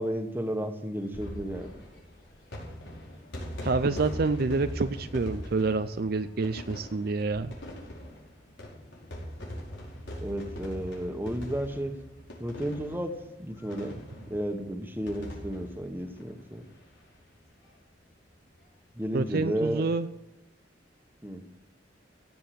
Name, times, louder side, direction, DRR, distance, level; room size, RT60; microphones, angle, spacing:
voice 1, 0.0-1.7 10.2-11.9 12.4-16.6 18.9-19.8 21.2-21.4, right 1 dB, 10° right, 6 dB, 1.4 m, -33 dB
sound 1, 1.0-17.0 17.3-17.4 17.6-17.7 19.0-19.3, equal, 85° left, 5.3 m, -41 dB
voice 2, 3.6-7.5 19.1-20.1, right 3 dB, 55° right, 10 dB, 0.5 m, -28 dB
16.5 x 7.7 x 7.8 m, 0.91 s
head